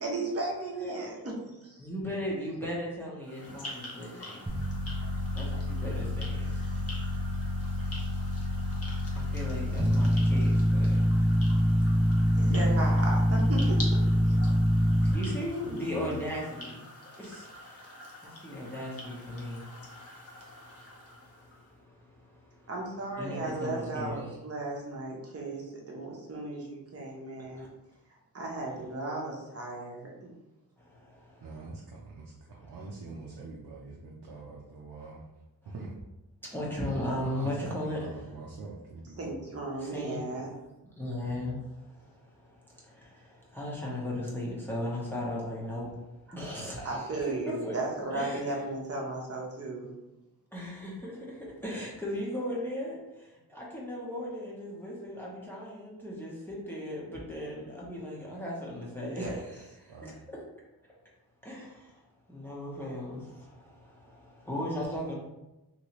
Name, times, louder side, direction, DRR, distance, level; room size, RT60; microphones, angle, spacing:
voice 1, 0.0-1.8 6.6-6.8 12.3-13.8 14.3-14.4 22.7-27.7 28.3-30.3 39.2-40.5 46.8-49.9 59.0-59.4, right 2 dB, 35° right, -2 dB, 0.8 m, -35 dB
voice 2, 1.8-4.5 5.3-6.6 9.1-12.4 14.3-17.9 18.2-22.7 23.2-24.3 27.4-27.7 30.8-31.6 32.5-32.8 34.3-34.4 35.6-35.7 36.4-38.2 39.8-40.2 41.0-45.9 46.3-47.1 47.6-47.8 48.1-48.6 50.5-60.4 61.4-62.0 62.3-65.1, left 1 dB, 5° left, -5 dB, 0.8 m, -38 dB
sound 1, 3.2-21.7, left 1 dB, 40° left, 0.8 m, -46 dB
sound 2, 4.5-15.1, equal, 15° right, 0.4 m, -26 dB
voice 3, 12.5-12.8 14.8-16.2 31.4-35.2 35.7-35.9 36.8-39.5 41.2-41.6 59.9-60.1, right 3 dB, 85° right, -3 dB, 0.6 m, -43 dB
3.0 x 2.9 x 3.0 m, 0.97 s
wide cardioid pair, 90°, 39 cm